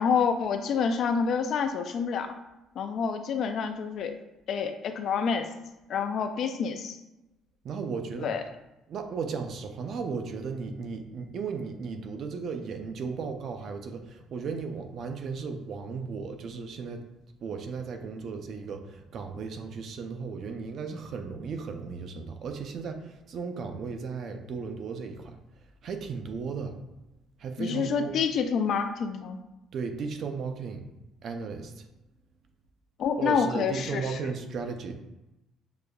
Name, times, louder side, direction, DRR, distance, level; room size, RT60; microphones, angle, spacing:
voice 1, 0.0-2.3 2.8-4.1 4.5-5.5 5.9-7.0 8.2-8.4 27.6-29.4 33.0-34.2, left 6 dB, 50° left, 7 dB, 0.3 m, -28 dB
voice 2, 7.6-8.3 8.9-17.0 17.4-25.3 25.8-26.8 27.4-28.1 29.7-30.8 31.2-31.9 33.2-34.9, right 5 dB, 45° right, 6 dB, 0.4 m, -35 dB
6.6 x 2.3 x 2.2 m, 0.95 s
cardioid pair, 160°, 0 cm